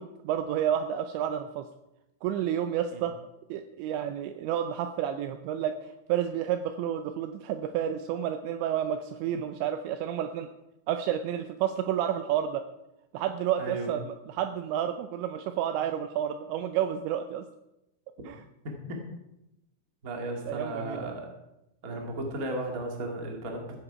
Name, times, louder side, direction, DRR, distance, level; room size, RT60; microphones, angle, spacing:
voice 1, 0.0-1.6 2.2-3.2 3.5-10.5 10.9-12.6 13.1-17.5 18.3-18.4 20.5-21.1, right 10 dB, 85° right, 8 dB, 2.6 m, -30 dB
voice 2, 13.6-13.9 18.2-18.3 18.6-19.0 20.0-21.2 21.8-23.6, right 1 dB, 60° right, 1 dB, 0.9 m, -35 dB
15.0 x 9.8 x 4.9 m, 0.90 s
omnidirectional pair, 5.8 m